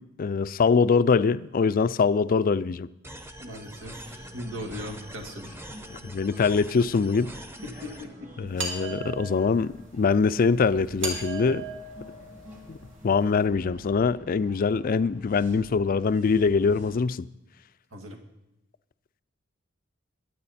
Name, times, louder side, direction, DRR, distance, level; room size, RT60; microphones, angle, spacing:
voice 1, 0.0-2.9 5.9-7.3 8.4-11.6 12.7-12.8 13.0-17.3, left 5 dB, 45° left, 0.4 m, -23 dB
sound 1, 3.0-8.0, right 1 dB, 10° right, 0.9 m, -44 dB
voice 2, 3.4-5.5 7.6-8.3 17.9-18.2, equal, 85° right, 1.9 m, -39 dB
sound 2, 4.0-17.0, equal, 40° right, 2.8 m, -48 dB
sound 3, 8.6-9.7 11.0-12.9, right 3 dB, 60° right, 2.9 m, -36 dB
22.5 x 8.6 x 4.2 m
head